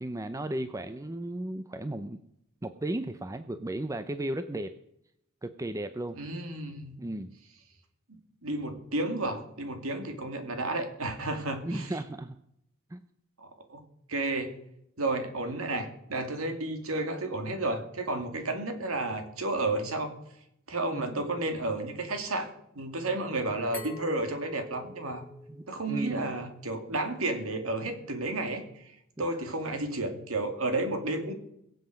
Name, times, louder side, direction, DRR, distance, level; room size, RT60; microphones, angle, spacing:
voice 1, 0.0-2.2 2.6-4.7 5.4-6.2 7.0-7.3 11.6-12.4 12.9-13.0 20.9-21.2 25.5-26.3 29.2-29.3, right 1 dB, 15° right, 10 dB, 0.6 m, -35 dB
voice 2, 6.2-7.0 8.1-11.9 13.4-13.8 14.1-14.5 15.0-20.1 20.7-25.3 25.7-31.3, right 2 dB, 75° right, 6 dB, 2.5 m, -32 dB
Glass, 23.7-26.5, left 2 dB, 10° left, 5.7 m, -46 dB
22.5 x 7.9 x 5.1 m, 0.76 s
head